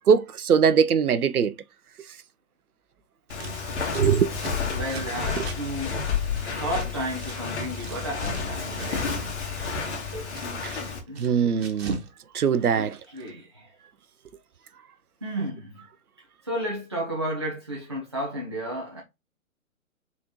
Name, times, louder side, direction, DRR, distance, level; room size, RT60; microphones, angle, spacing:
voice 1, 0.1-1.5 3.9-4.4 5.4-5.5 10.6-10.7 11.2-12.0 12.3-13.0, right 7 dB, 85° right, 0.6 m, -21 dB
Walk footsteps, 3.3-11.0, left 5 dB, 50° left, 1.7 m, -31 dB
Scissors, 3.3-7.4 7.6-9.2 9.5-12.1 12.4-13.3, right 3 dB, 45° right, 1.1 m, -41 dB
voice 2, 3.7-4.0 4.7-6.1 6.4-9.3 10.1-10.3 11.1-11.5 12.7-13.7 15.2-15.8 16.4-19.0, right 1 dB, 20° right, 0.4 m, -33 dB
4.0 x 3.7 x 3.0 m
figure-of-eight pair, 135°, 43 cm